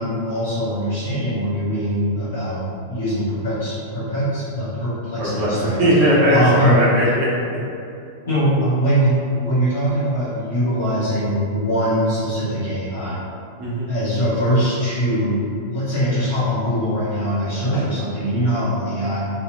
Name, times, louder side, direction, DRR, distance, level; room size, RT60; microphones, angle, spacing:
voice 1, 0.0-5.7 6.3-6.8 8.2-13.2 13.9-15.4 15.7-19.2, equal, 65° left, -13 dB, 0.9 m, -22 dB
voice 2, 5.2-7.3 13.6-13.9, equal, 45° right, -7 dB, 1.0 m, -18 dB
3.1 x 2.9 x 2.4 m, 2.6 s
figure-of-eight pair, 95°, 0 cm